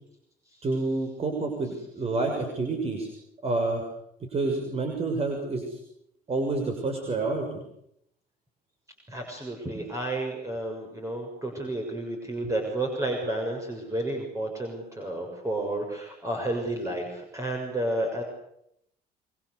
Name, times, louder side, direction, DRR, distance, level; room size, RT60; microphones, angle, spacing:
voice 1, 0.6-3.1 3.4-3.8 4.3-5.8 6.3-7.5, right 3 dB, 35° right, 3 dB, 6.4 m, -28 dB
voice 2, 9.1-18.2, right 1 dB, 20° right, 2 dB, 7.0 m, -31 dB
25.5 x 23.5 x 8.3 m, 0.76 s
cardioid pair, 110°, 17 cm